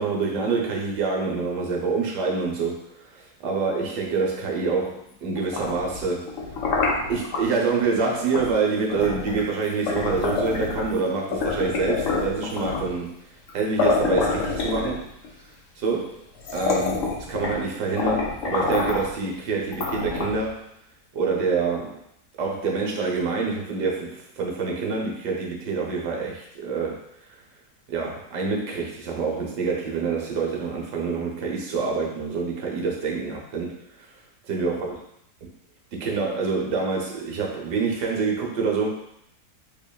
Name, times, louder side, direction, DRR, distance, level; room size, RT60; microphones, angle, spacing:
voice 1, 0.0-6.3 7.1-13.1 13.5-15.1 15.8-16.2 16.5-20.6 21.1-22.0 22.4-27.0 27.9-33.7 34.5-35.0 35.9-39.0, right 4 dB, 85° right, -1 dB, 1.4 m, -26 dB
sound 1, 5.4-7.4 8.3-8.5 8.9-11.0 11.3-13.0 13.5-13.6 13.8-15.3 15.9-16.0 16.4-17.7 18.0-19.1 19.7-20.5, left 4 dB, 60° left, 0.9 m, -27 dB
4.5 x 2.9 x 2.3 m, 0.76 s
omnidirectional pair, 1.7 m